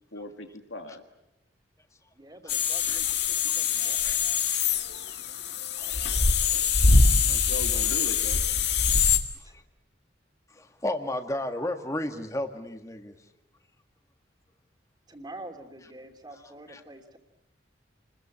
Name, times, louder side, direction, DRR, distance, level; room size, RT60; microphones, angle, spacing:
voice 1, 0.1-1.0 7.3-8.4, left 2 dB, 85° left, 6 dB, 2.6 m, -39 dB
voice 2, 2.1-3.2 3.6-4.0 9.4-9.6 15.1-17.2, right 1 dB, 20° right, 5 dB, 2.9 m, -46 dB
sound 1, 2.5-9.2, left 5 dB, 60° left, 1.9 m, -24 dB
voice 3, 10.5-13.1 16.3-16.4 16.7-16.8, left 1 dB, 15° left, 6 dB, 1.6 m, -33 dB
29.0 x 21.5 x 8.6 m, 0.91 s
head